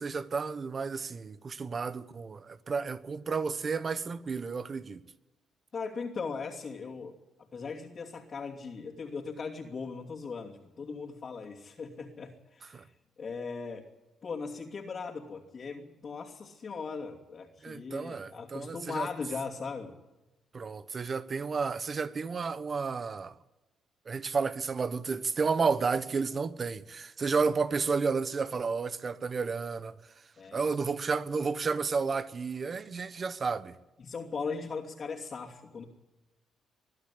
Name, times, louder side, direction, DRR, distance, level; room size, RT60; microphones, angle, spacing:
voice 1, 0.0-5.0 12.7-12.8 17.6-19.1 20.5-23.3 24.1-29.9 30.5-33.7, right 5 dB, 40° right, 1.1 m, -31 dB
voice 2, 5.7-7.2 7.5-12.9 13.2-13.9 14.2-20.0 30.4-30.6 34.0-35.8, left 5 dB, 45° left, 2.9 m, -39 dB
22.5 x 12.0 x 10.0 m
cardioid pair, 90°, 0 cm